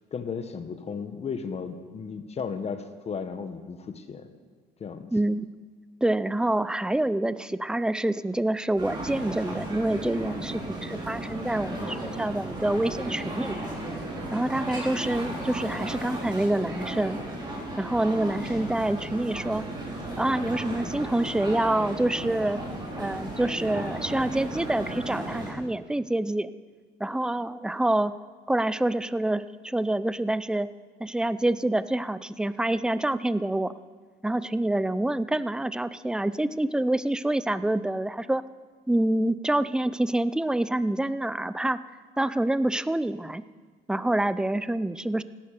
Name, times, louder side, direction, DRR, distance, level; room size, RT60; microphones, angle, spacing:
voice 1, 0.1-4.3 4.8-5.1, left 6 dB, 40° left, 8 dB, 1.5 m, -35 dB
voice 2, 5.1-5.5 6.0-13.7 14.3-17.2 17.8-19.7 20.2-22.6 23.0-26.5 27.0-28.1 28.5-30.7 31.0-33.7 34.2-38.4 38.9-41.8 42.2-43.5 43.9-45.2, right 1 dB, 5° right, 15 dB, 0.5 m, -27 dB
sound 1, 8.8-25.5, right 1 dB, 25° right, 5.1 m, -35 dB
17.0 x 12.0 x 6.8 m, 1.5 s
cardioid pair, 110°, 17 cm